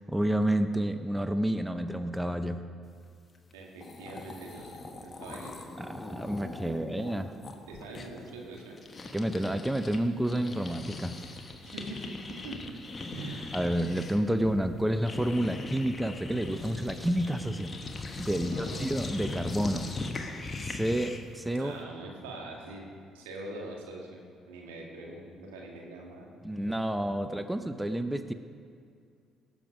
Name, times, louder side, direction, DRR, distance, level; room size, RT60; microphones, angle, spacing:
voice 1, 0.0-2.6 5.8-7.3 9.1-11.2 13.5-17.7 18.2-19.9 20.6-21.7 26.4-28.3, right 1 dB, 10° right, 9 dB, 0.7 m, -29 dB
sound 1, 3.5-3.6 3.8-10.0 10.2-21.3, left 3 dB, 35° left, 1.4 m, -40 dB
voice 2, 3.5-4.7 5.0-5.6 7.7-8.8 11.6-12.6 13.1-13.5 18.4-18.8 21.6-22.9 23.1-24.2 24.5-26.3, right 2 dB, 80° right, -1 dB, 1.9 m, -43 dB
17.5 x 7.2 x 5.2 m, 2.3 s
hypercardioid pair, 50°, 0 cm